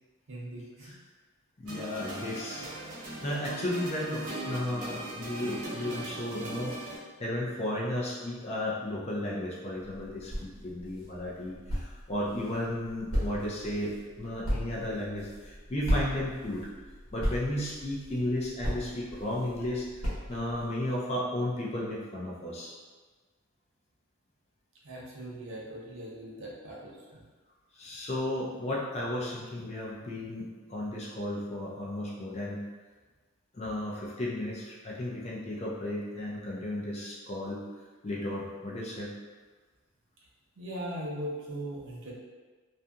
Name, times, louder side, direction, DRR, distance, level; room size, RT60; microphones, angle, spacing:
voice 1, 0.3-0.9 24.8-27.2 40.6-42.1, right 1 dB, 60° right, -5 dB, 0.6 m, -39 dB
voice 2, 1.6-2.7 3.2-13.9 14.2-16.7 17.1-19.9 20.3-22.7 27.8-32.6 33.5-37.6 38.0-39.1, left 1 dB, 30° left, -5 dB, 0.4 m, -34 dB
sound 1, 1.7-7.0, right 1 dB, 90° right, 0.9 m, -39 dB
sound 2, 9.8-20.7, equal, 75° left, 1.0 m, -36 dB
2.7 x 2.5 x 2.3 m, 1.4 s
head